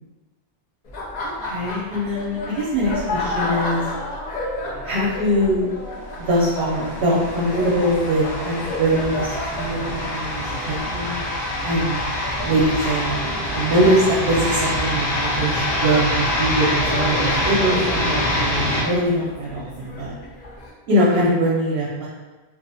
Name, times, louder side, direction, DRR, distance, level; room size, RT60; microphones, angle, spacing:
Laughter, 0.8-20.7, left 1 dB, 50° left, 0.6 m, -32 dB
voice 1, 1.4-3.8 4.8-5.7 6.2-11.2 11.6-12.0 12.4-13.2 13.5-20.1 20.9-22.1, right 1 dB, 70° right, -5 dB, 0.8 m, -22 dB
sound 1, 6.3-18.8, left 1 dB, 80° left, 1.2 m, -25 dB
2.5 x 2.0 x 2.6 m, 1.2 s
omnidirectional pair, 1.1 m